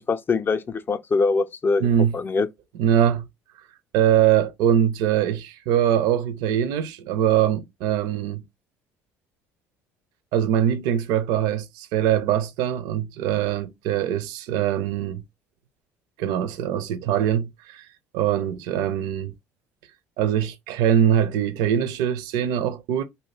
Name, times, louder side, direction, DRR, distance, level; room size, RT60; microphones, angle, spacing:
voice 1, 0.0-1.9 2.1-2.5, left 4 dB, 30° left, 0.4 m, -23 dB
voice 2, 1.8-2.2 2.8-3.2 3.9-8.4 10.3-15.2 16.2-17.8 18.1-19.3 20.2-23.0, right 10 dB, 75° right, 0.5 m, -22 dB
2.6 x 2.2 x 3.2 m
supercardioid pair, 75°, 7 cm